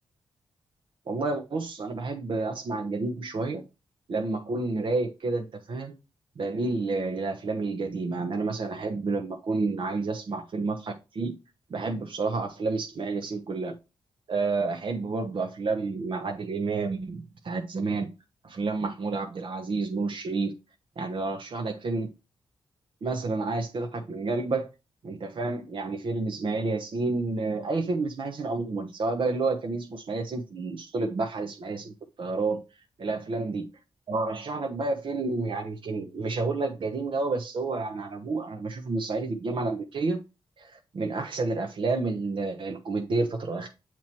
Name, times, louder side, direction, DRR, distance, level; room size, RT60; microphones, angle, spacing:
voice 1, 1.1-3.6 4.1-5.9 6.4-11.3 11.7-13.7 14.3-18.1 18.4-20.5 21.0-22.1 23.0-24.7 25.0-32.6 33.0-33.7 34.1-40.2 40.6-43.7, right 3 dB, 55° right, 0.8 m, -30 dB
7.2 x 3.0 x 4.4 m
cardioid pair, 65°, 10 cm